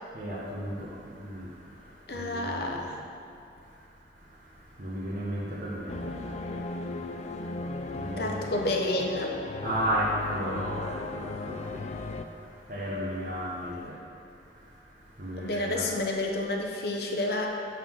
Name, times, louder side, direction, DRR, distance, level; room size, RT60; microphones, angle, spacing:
voice 1, 0.1-2.9 3.6-3.8 4.2-8.5 9.6-14.0 14.2-15.9, equal, 45° right, -8 dB, 1.0 m, -35 dB
voice 2, 2.1-3.0 8.2-9.3 13.8-13.9 15.4-17.5, left 2 dB, 55° left, 1 dB, 0.8 m, -30 dB
sound 1, 5.9-12.3, left 2 dB, 35° left, 0.3 m, -36 dB
9.3 x 3.7 x 6.1 m, 2.6 s
head